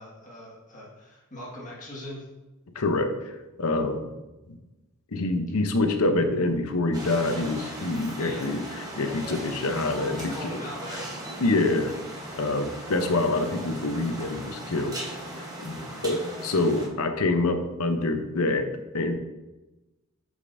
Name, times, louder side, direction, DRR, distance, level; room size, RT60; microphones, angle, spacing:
voice 1, 0.0-2.2 8.2-8.6 9.8-11.1 15.8-16.0, left 1 dB, 35° left, -5 dB, 1.7 m, -41 dB
voice 2, 2.7-3.1 3.6-4.0 4.5-4.6 5.1-10.6 11.4-11.9 12.3-14.9 15.4-18.7 18.9-19.2, left 2 dB, 90° left, 6 dB, 0.8 m, -26 dB
sound 1, 6.9-16.9, right 1 dB, 15° right, 1.0 m, -38 dB
8.3 x 5.1 x 2.6 m, 1.1 s
head